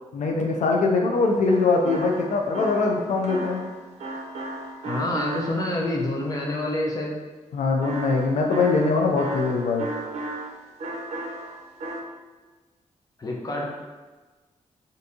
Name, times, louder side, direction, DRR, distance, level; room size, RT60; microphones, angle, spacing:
voice 1, 0.1-3.6 7.5-9.9, left 3 dB, 85° left, 1 dB, 0.4 m, -22 dB
sound 1, 1.1-5.9 7.8-10.5 10.8-12.0, right 2 dB, 60° right, 0.5 m, -35 dB
voice 2, 4.8-7.2 13.2-13.7, left 1 dB, 30° left, -1 dB, 0.6 m, -27 dB
3.4 x 2.6 x 2.7 m, 1.3 s
wide cardioid pair, 115°, 12 cm